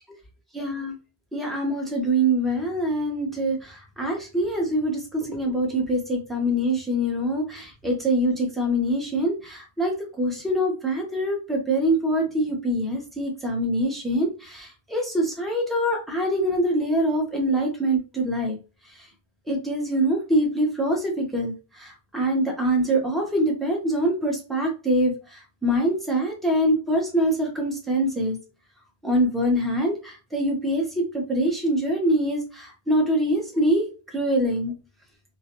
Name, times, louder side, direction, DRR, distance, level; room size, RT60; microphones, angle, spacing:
voice 1, 0.5-0.9 1.3-18.6 19.5-21.5 21.8-25.1 25.6-28.4 29.0-30.8 31.1-33.8 34.1-34.7, right 1 dB, ahead, -1 dB, 0.5 m, -24 dB
2.4 x 2.2 x 2.9 m, 0.32 s
omnidirectional pair, 1.1 m